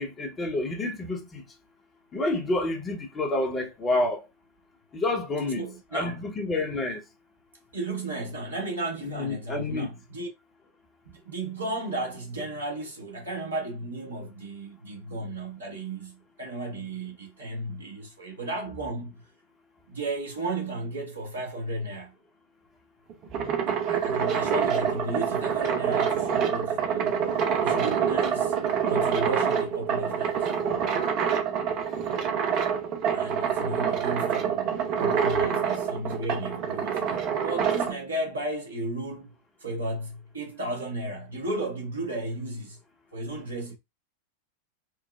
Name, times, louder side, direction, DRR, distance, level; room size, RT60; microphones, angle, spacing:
voice 1, 0.0-1.4 2.1-4.2 4.9-5.6 5.9-7.0 9.1-9.9, left 2 dB, 20° left, 0.9 m, -28 dB
voice 2, 5.5-6.2 7.7-10.3 11.1-19.2 19.9-22.1 23.9-27.2 27.6-28.6 28.8-30.5 33.1-42.8 43.1-43.7, right 2 dB, 75° right, 1.1 m, -34 dB
sound 1, 23.1-37.9, right 7 dB, 40° right, 0.6 m, -26 dB
4.6 x 2.0 x 2.3 m
figure-of-eight pair, 90°, 0 cm